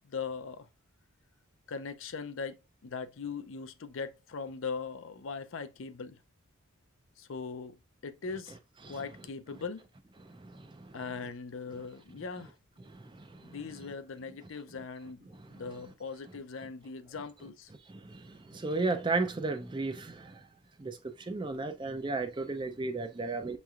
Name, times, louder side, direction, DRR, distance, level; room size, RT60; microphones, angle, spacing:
voice 1, 0.1-0.7 1.7-6.2 7.2-7.8 8.0-8.6 8.9-9.8 10.9-12.5 13.4-17.7, left 5 dB, 60° left, 0.5 m, -40 dB
voice 2, 18.5-20.2 20.8-20.9 21.3-23.6, right 3 dB, 20° right, 0.4 m, -32 dB
6.4 x 3.1 x 2.4 m
head